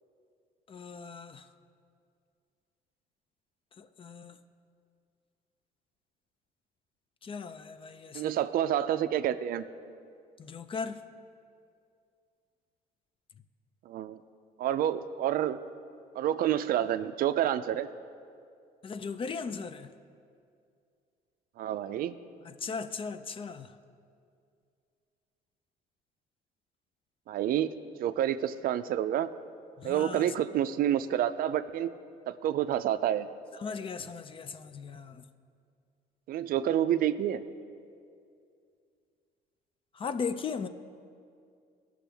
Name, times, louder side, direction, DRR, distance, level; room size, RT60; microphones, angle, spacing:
voice 1, 0.7-1.5 3.8-4.4 7.2-8.4 10.4-11.0 18.8-19.9 22.4-23.8 29.8-30.3 33.6-35.2 39.9-40.7, left 5 dB, 30° left, 12 dB, 0.4 m, -38 dB
voice 2, 8.1-9.6 13.9-14.2 14.6-15.6 16.1-17.9 21.6-22.1 27.3-27.7 28.0-29.3 29.8-31.9 32.3-33.3 36.3-37.4, right 11 dB, 60° right, 12 dB, 0.4 m, -28 dB
16.0 x 6.1 x 3.4 m, 2.4 s
cardioid pair, 110°, 17 cm